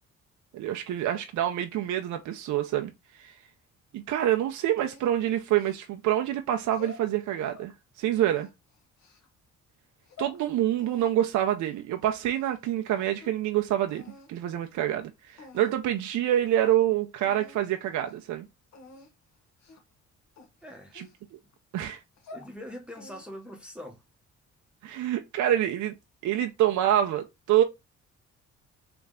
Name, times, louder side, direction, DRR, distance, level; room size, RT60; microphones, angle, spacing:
voice 1, 0.5-2.9 3.2-3.3 3.9-8.5 10.2-14.0 14.3-18.5 20.9-21.1 21.3-21.4 21.7-22.0 24.8-25.9 26.2-27.6, right 12 dB, 75° right, 0.6 m, -26 dB
sound 1, 4.8-6.1 6.6-7.7 8.2-9.3 9.8-10.4 10.8-12.6 12.8-13.5 13.9-14.3 15.0-15.1 15.4-15.9 16.3-16.4 16.6-16.8 17.2-17.6 17.9-18.2 18.7-19.1 19.6-19.9 20.4-21.5 22.0-22.5 22.9-23.5, left 3 dB, 65° left, 1.2 m, -49 dB
voice 2, 20.6-21.0 22.3-24.0, equal, 5° right, 0.9 m, -43 dB
3.4 x 3.1 x 3.6 m
cardioid pair, 90°, 30 cm